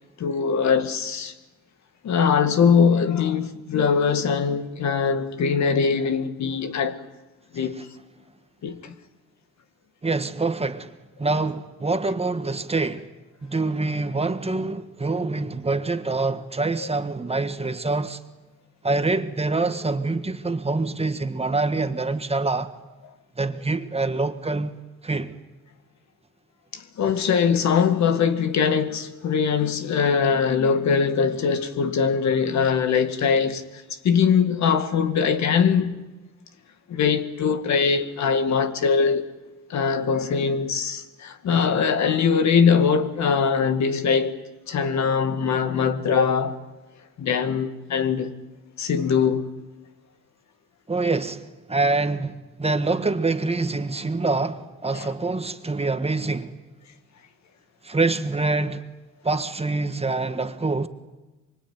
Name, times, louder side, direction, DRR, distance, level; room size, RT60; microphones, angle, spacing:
voice 1, 0.2-1.3 2.0-7.0 7.5-7.9 8.6-8.9 26.7-36.0 36.9-39.3 39.7-44.4 44.7-46.6 47.2-48.3 48.8-49.5 54.9-55.1, left 6 dB, 65° left, 1.9 m, -22 dB
voice 2, 10.0-10.9 11.2-13.1 13.4-18.2 18.8-22.7 23.4-24.8 25.0-25.4 50.9-56.6 57.8-58.8 59.2-60.9, right 3 dB, 20° right, 1.6 m, -25 dB
24.5 x 24.0 x 9.5 m
cardioid pair, 90°, 30 cm